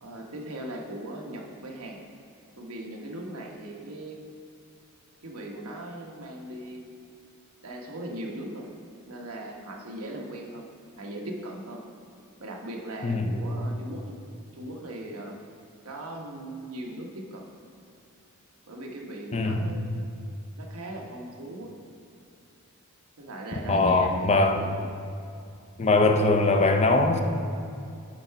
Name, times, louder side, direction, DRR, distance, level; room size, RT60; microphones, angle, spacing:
voice 1, 0.0-2.0 2.6-4.2 5.2-6.9 7.6-8.7 9.1-10.7 11.0-11.9 12.4-14.2 14.5-15.4 15.8-17.5 18.7-19.9 20.6-21.9 23.2-24.8, right 1 dB, 75° right, 0 dB, 1.0 m, -39 dB
voice 2, 19.3-19.7 23.7-24.6 25.8-27.2, left 2 dB, 30° left, 4 dB, 0.5 m, -21 dB
8.0 x 4.7 x 5.6 m, 2.5 s
head